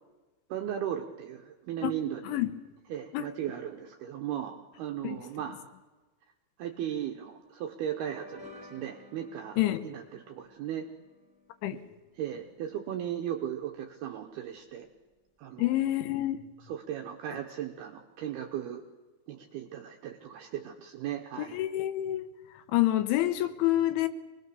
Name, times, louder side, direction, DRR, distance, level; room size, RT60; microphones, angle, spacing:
voice 1, 0.5-2.4 2.9-5.6 6.6-9.6 9.8-10.9 12.2-14.9 15.4-15.8 16.7-18.8 19.3-21.6, right 10 dB, 75° right, 2.3 m, -36 dB
sound 1, 8.0-12.9, left 3 dB, ahead, 2.4 m, -54 dB
voice 2, 15.6-16.4 21.4-22.2 22.5-24.1, left 15 dB, 75° left, 3.2 m, -27 dB
24.5 x 20.5 x 6.9 m
omnidirectional pair, 5.8 m